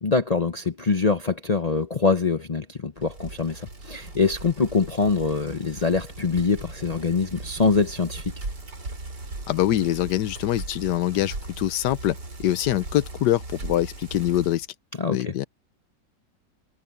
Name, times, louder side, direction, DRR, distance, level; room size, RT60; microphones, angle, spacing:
voice 1, 0.0-8.3 15.0-15.3, left 4 dB, 50° left, 0.4 m, -24 dB
Bicycle, 3.0-14.7, right 2 dB, 70° right, 5.2 m, -38 dB
voice 2, 9.5-14.7 15.1-15.5, left 13 dB, 75° left, 1.3 m, -24 dB
omnidirectional pair, 1.9 m